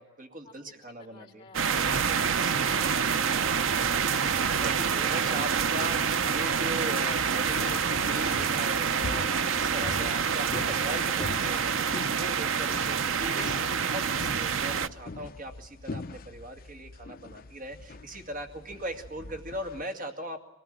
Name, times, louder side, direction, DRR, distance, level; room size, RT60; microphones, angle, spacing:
voice 1, 0.0-1.5 2.3-2.7 4.2-20.4, right 1 dB, 45° right, 5 dB, 2.5 m, -39 dB
voice 2, 1.0-1.6 1.9-3.9, left 2 dB, 25° left, 0 dB, 4.8 m, -52 dB
sound 1, 1.5-14.9, right 6 dB, 70° right, 0.8 m, -27 dB
sound 2, 7.1-19.8, left 3 dB, 45° left, 0.7 m, -42 dB
24.0 x 19.0 x 9.1 m, 1.0 s
head